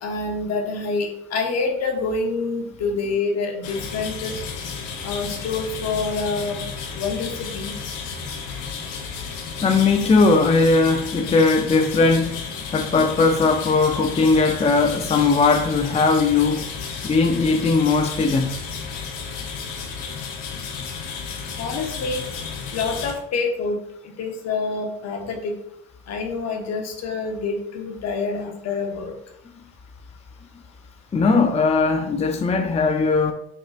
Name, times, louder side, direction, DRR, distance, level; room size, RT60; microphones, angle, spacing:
voice 1, 0.0-4.4 5.0-6.6 6.9-7.7 21.6-22.2 22.7-23.8 24.0-25.5 26.1-29.1, left 4 dB, 55° left, 1.1 m, -27 dB
sound 1, 3.6-23.1, left 5 dB, 80° left, 0.9 m, -33 dB
voice 2, 9.6-12.4 12.7-16.6 17.0-18.7 31.1-33.3, left 4 dB, 20° left, 0.5 m, -19 dB
5.4 x 3.9 x 2.4 m
supercardioid pair, 70°, 31 cm